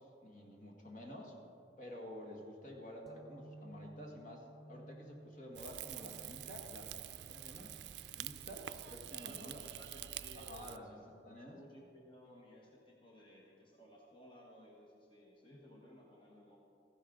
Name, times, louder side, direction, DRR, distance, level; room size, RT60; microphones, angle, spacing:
voice 1, 0.0-1.3 1.8-7.7 8.1-9.6 10.4-11.6, left 1 dB, 45° left, 0 dB, 1.8 m, -50 dB
sound 1, 3.1-10.4, right 2 dB, ahead, 0.6 m, -58 dB
Rain / Fire, 5.5-10.8, right 12 dB, 75° right, 0.4 m, -47 dB
voice 2, 9.2-16.6, left 1 dB, 30° left, -2 dB, 1.4 m, -59 dB
14.5 x 11.0 x 3.9 m, 2.7 s
head